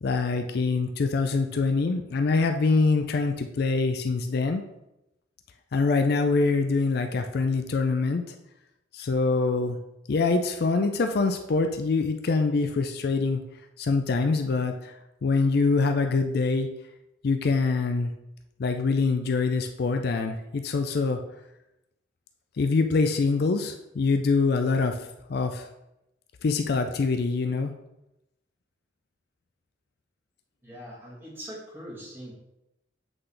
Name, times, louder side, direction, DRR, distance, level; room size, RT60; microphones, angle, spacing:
voice 1, 0.0-4.6 5.7-8.3 8.9-9.8 10.1-13.4 13.8-14.9 15.2-16.7 17.2-18.1 18.6-21.2 22.6-25.7 26.4-27.7, left 4 dB, 55° left, 6 dB, 0.4 m, -24 dB
voice 2, 30.6-32.3, equal, 10° right, -5 dB, 1.8 m, -42 dB
7.9 x 3.9 x 3.3 m, 0.90 s
head